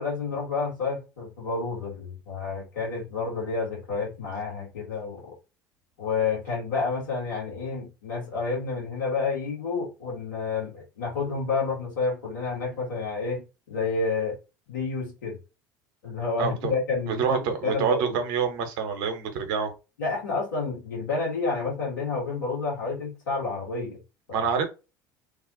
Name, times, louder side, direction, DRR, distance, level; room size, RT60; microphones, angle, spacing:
voice 1, 0.0-5.2 6.0-14.4 14.7-15.4 16.0-18.2 20.0-24.0 24.3-24.5, left 4 dB, 75° left, 1.9 m, -30 dB
voice 2, 16.4-16.7 17.1-19.7 24.3-24.7, right 6 dB, 60° right, 1.0 m, -26 dB
3.3 x 2.5 x 4.0 m
figure-of-eight pair, 65°, 10 cm